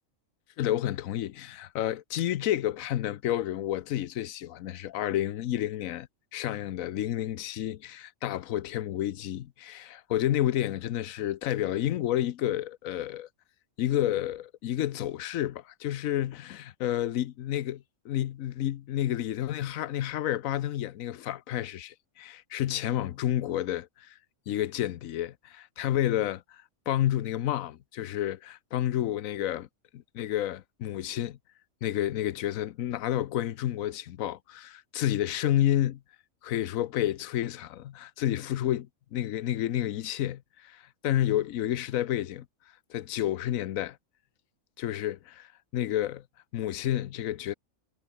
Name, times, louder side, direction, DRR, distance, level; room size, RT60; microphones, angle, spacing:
voice 1, 0.6-6.1 6.3-13.3 13.8-24.1 24.5-26.4 26.9-29.7 29.9-31.4 31.8-36.0 36.4-38.9 39.1-42.4 42.9-44.0 44.8-45.5 45.7-46.2 46.5-47.5, left 12 dB, 80° left, 1.1 m, -30 dB
omnidirectional pair, 1.4 m